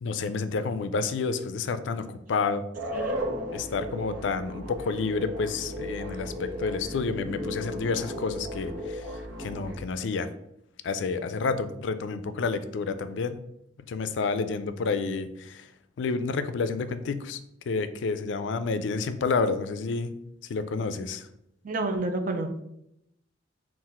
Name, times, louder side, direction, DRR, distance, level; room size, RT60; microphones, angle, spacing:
voice 1, 0.0-2.6 3.5-10.3 10.8-13.4 13.9-15.7 16.0-17.4 17.7-20.1 20.5-21.3, left 4 dB, 75° left, 11 dB, 0.4 m, -29 dB
sound 1, 2.7-9.8, equal, 85° right, 1.0 m, -35 dB
voice 2, 21.6-22.6, right 2 dB, 45° right, 6 dB, 0.5 m, -29 dB
3.9 x 2.5 x 4.3 m, 0.78 s
head